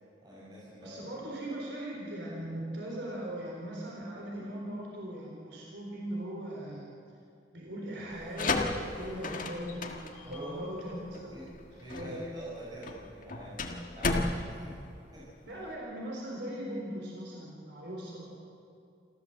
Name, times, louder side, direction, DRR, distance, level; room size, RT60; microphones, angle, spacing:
voice 1, 0.2-1.0 10.2-10.6 11.3-11.4 11.8-15.2, right 1 dB, 25° right, -8 dB, 6.1 m, -45 dB
voice 2, 0.8-6.9 7.5-11.4 11.7-12.3 15.4-18.4, right 1 dB, 70° right, -2 dB, 4.1 m, -39 dB
sound 1, 8.1-15.7, left 3 dB, 50° left, 1.8 m, -35 dB
27.5 x 14.0 x 7.9 m, 2.4 s
head